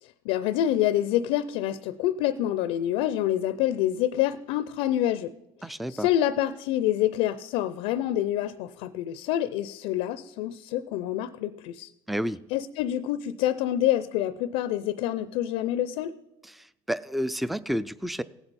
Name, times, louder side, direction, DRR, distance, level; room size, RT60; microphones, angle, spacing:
voice 1, 0.0-5.3 5.6-11.9 12.5-16.1, left 12 dB, 80° left, 15 dB, 0.5 m, -27 dB
voice 2, 5.6-6.1 12.1-12.4 16.9-18.2, equal, ahead, 17 dB, 0.4 m, -29 dB
17.5 x 8.0 x 4.1 m, 0.90 s
supercardioid pair, 110°, 10 cm